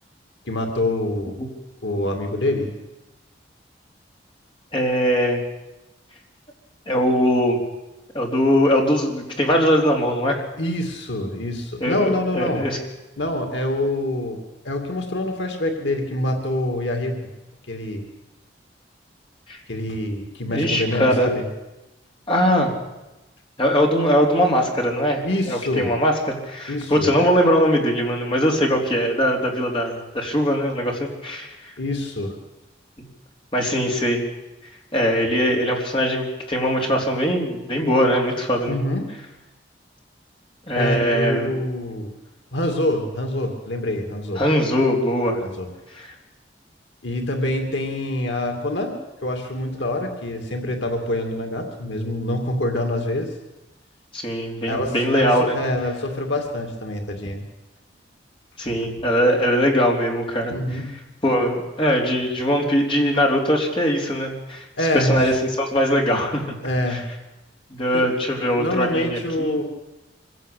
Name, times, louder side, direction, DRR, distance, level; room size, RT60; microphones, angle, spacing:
voice 1, 0.5-1.5 1.8-2.7 10.6-12.7 13.2-14.4 14.6-17.2 17.7-18.0 19.7-21.5 25.2-25.9 26.7-27.1 31.8-32.3 38.6-39.1 40.7-42.1 42.5-44.4 45.4-45.7 47.0-48.9 49.2-53.3 54.7-57.4 60.5-61.0 64.8-65.2 66.6-67.1 67.9-68.1 68.5-69.6, left 1 dB, 80° left, 4 dB, 2.6 m, -25 dB
voice 2, 4.7-5.4 6.9-7.6 8.1-10.4 11.8-12.8 19.5-19.6 20.5-21.3 22.3-22.7 23.6-31.5 33.5-34.2 34.9-38.8 40.7-41.5 44.4-45.4 46.0-46.1 54.1-55.6 58.6-60.8 61.2-64.6 64.9-66.4 66.9-67.0 67.7-69.6, equal, 30° left, 0 dB, 3.9 m, -21 dB
24.5 x 17.0 x 8.5 m, 1.0 s
head